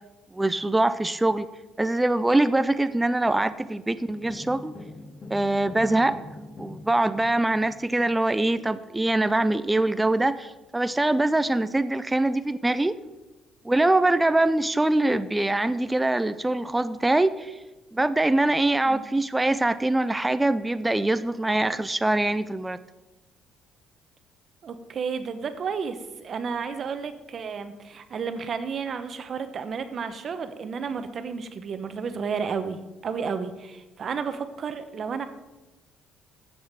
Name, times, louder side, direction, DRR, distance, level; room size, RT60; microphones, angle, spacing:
voice 1, 0.3-1.5 1.8-4.7 5.3-6.2 6.6-13.0 13.6-17.6 17.9-22.8, right 2 dB, 10° right, 12 dB, 0.4 m, -23 dB
sound 1, 4.1-8.5, left 2 dB, 40° left, 2.2 m, -44 dB
voice 2, 24.6-35.2, right 6 dB, 45° right, 10 dB, 1.0 m, -32 dB
7.9 x 7.1 x 6.7 m, 1.1 s
cardioid pair, 100°, 0 cm